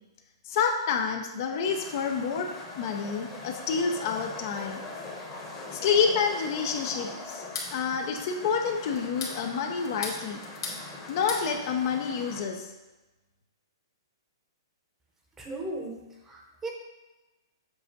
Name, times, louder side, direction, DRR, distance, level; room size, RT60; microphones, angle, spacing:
voice 1, 0.5-4.8 5.7-7.4 7.7-10.4 11.1-12.7, left 6 dB, 45° left, 4 dB, 0.7 m, -28 dB
sound 1, 1.4-12.5, left 3 dB, 20° left, 1.1 m, -42 dB
sound 2, 7.3-7.7 9.0-9.4 9.8-10.8 11.1-11.5, left 4 dB, 60° left, 1.6 m, -36 dB
voice 2, 15.4-16.7, right 2 dB, 10° right, 1 dB, 0.9 m, -37 dB
7.7 x 2.6 x 5.9 m, 1.1 s
hypercardioid pair, 155°, 2 cm